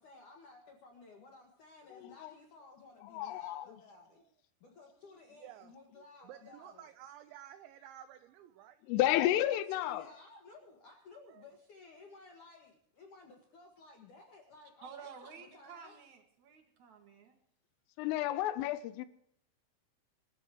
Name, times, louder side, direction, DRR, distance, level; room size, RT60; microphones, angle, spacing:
voice 1, 0.0-4.2 4.6-6.9 9.5-16.0, left 3 dB, 55° left, 2.3 m, -56 dB
voice 2, 1.9-2.3 3.0-3.7 8.9-10.0 18.0-19.1, left 13 dB, 80° left, 3.1 m, -31 dB
voice 3, 5.3-8.8 11.2-11.4, right 11 dB, 80° right, 2.8 m, -53 dB
voice 4, 14.8-17.4, right 6 dB, 60° right, 2.1 m, -51 dB
26.0 x 13.5 x 3.0 m
omnidirectional pair, 5.9 m